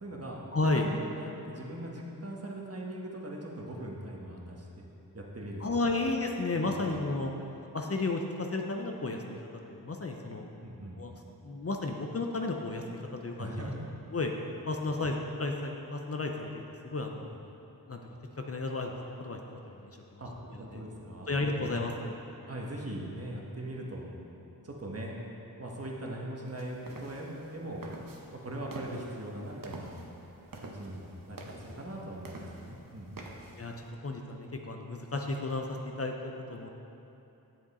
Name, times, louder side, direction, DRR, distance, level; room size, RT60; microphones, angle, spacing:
voice 1, 0.0-0.4 0.7-4.9 5.1-6.0 6.7-6.9 10.6-11.0 13.4-13.9 17.2-17.4 20.2-21.7 22.4-24.1 24.6-25.2 25.6-27.8 28.3-29.9 30.5-33.4, right 1 dB, 40° right, -2 dB, 1.4 m, -40 dB
voice 2, 0.5-0.9 5.6-7.3 7.7-10.5 11.0-11.1 11.4-13.5 14.1-14.3 14.7-17.3 17.9-18.0 18.5-20.2 20.5-20.8 21.3-22.2 33.6-33.7 34.0-36.7, left 2 dB, 40° left, 2 dB, 0.7 m, -33 dB
sound 1, 26.5-33.9, right 2 dB, 60° right, 0.9 m, -48 dB
7.9 x 7.5 x 4.2 m, 2.9 s
wide cardioid pair, 55°, 38 cm